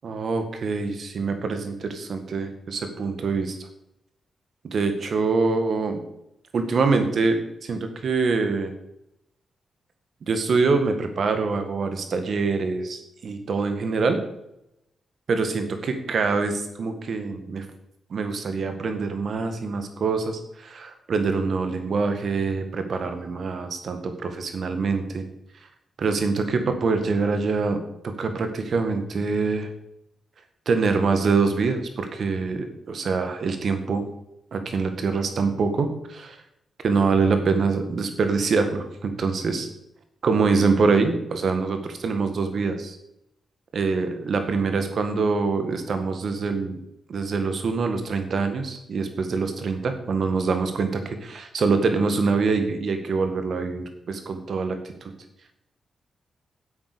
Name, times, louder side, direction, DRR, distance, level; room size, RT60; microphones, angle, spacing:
voice 1, 0.0-3.6 4.6-6.0 6.5-8.7 10.3-14.2 15.3-17.7 18.1-25.3 26.0-29.7 30.7-34.0 34.5-36.4 36.8-39.7 40.2-43.0 43.7-46.8 47.1-55.1, right 4 dB, 65° right, 7 dB, 1.8 m, -25 dB
9.0 x 8.0 x 6.9 m, 0.82 s
cardioid pair, 70°, 0 cm